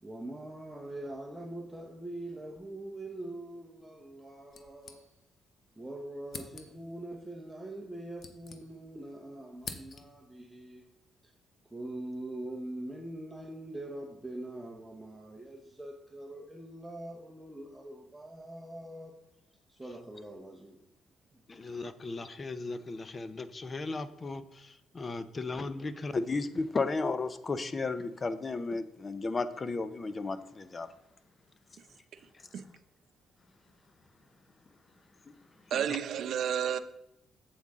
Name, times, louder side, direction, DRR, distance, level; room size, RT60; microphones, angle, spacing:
voice 1, 0.0-5.0 5.7-10.9 11.2-11.3 11.7-19.2 19.8-20.8 21.3-21.4, right 1 dB, 10° right, 1.0 m, -43 dB
sound 1, 4.5-5.5 5.8-5.9 6.3-7.0 7.8-9.1 9.3-10.3, left 5 dB, 55° left, 1.0 m, -47 dB
voice 2, 21.5-30.9 35.7-36.0, left 3 dB, 30° left, 0.7 m, -35 dB
voice 3, 35.7-36.8, right 9 dB, 70° right, 0.6 m, -31 dB
8.1 x 7.8 x 3.7 m
cardioid pair, 90°, 0 cm